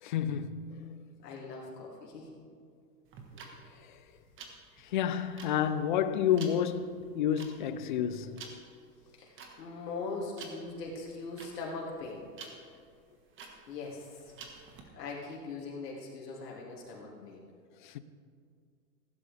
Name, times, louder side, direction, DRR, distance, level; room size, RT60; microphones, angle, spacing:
voice 1, 0.0-1.0 3.8-4.0 4.8-8.5 17.2-17.3 17.8-18.0, left 9 dB, 35° left, 0.4 m, -30 dB
voice 2, 1.2-2.3 9.2-9.3 9.6-12.3 13.7-14.0 14.9-17.4, left 3 dB, 75° left, 2.9 m, -40 dB
sound 1, 3.1-14.8, right 5 dB, 25° right, 1.5 m, -50 dB
15.5 x 12.0 x 3.4 m
hypercardioid pair, 130°, 49 cm